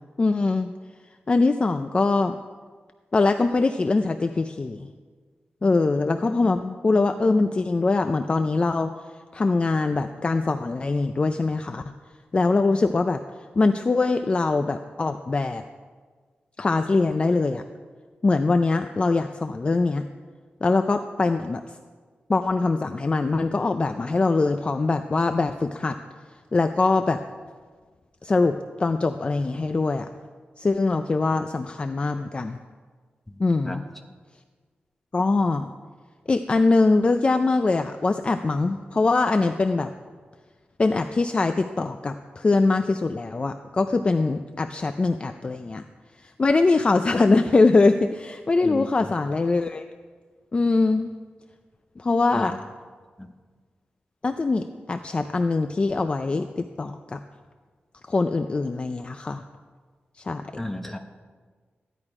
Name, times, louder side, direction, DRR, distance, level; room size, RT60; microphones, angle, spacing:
voice 1, 0.2-0.7 1.3-2.4 3.1-4.9 5.6-8.9 9.3-11.8 12.3-13.2 13.6-15.6 16.6-17.6 18.2-20.0 20.6-21.6 22.3-26.0 26.5-27.2 28.2-30.1 30.6-32.6 33.4-33.9 35.1-35.7 36.3-39.9 40.8-45.8 46.2-49.8 50.5-51.1 52.0-52.6 54.2-57.2 58.1-59.4 60.2-60.6, left 3 dB, 30° left, 7 dB, 0.4 m, -22 dB
voice 2, 60.6-61.0, left 1 dB, 5° left, 3 dB, 1.1 m, -32 dB
15.0 x 11.0 x 4.8 m, 1.5 s
wide cardioid pair, 170°, 4 cm